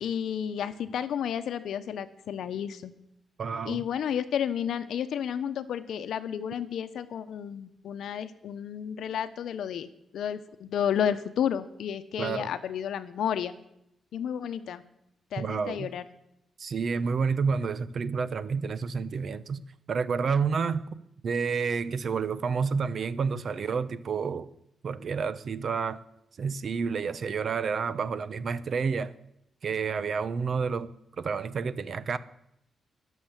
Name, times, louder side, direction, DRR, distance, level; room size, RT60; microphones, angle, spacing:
voice 1, 0.0-2.9 3.6-9.9 10.1-13.5 14.1-14.8 15.3-16.0, left 9 dB, 85° left, 11 dB, 0.9 m, -31 dB
voice 2, 3.4-3.8 12.2-12.5 15.4-15.9 16.6-20.8 21.2-24.5 24.8-26.0 26.4-29.1 29.6-30.9 31.2-32.2, right 5 dB, 55° right, 15 dB, 0.9 m, -29 dB
21.5 x 7.5 x 7.5 m, 0.79 s
cardioid pair, 115°, 0 cm